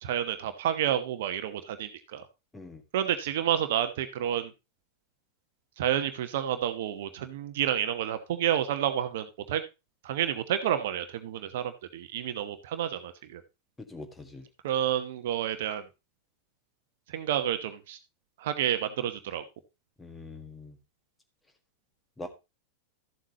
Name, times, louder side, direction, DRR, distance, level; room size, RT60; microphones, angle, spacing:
voice 1, 0.0-2.2 2.9-4.5 5.8-9.6 10.0-13.4 14.6-15.8 17.1-18.0 18.4-19.4, right 10 dB, 55° right, 10 dB, 1.0 m, -30 dB
voice 2, 13.9-14.5 20.0-20.8 22.2-22.3, left 2 dB, 10° left, 6 dB, 1.7 m, -43 dB
13.0 x 7.6 x 2.9 m, 0.25 s
figure-of-eight pair, 90°, 0 cm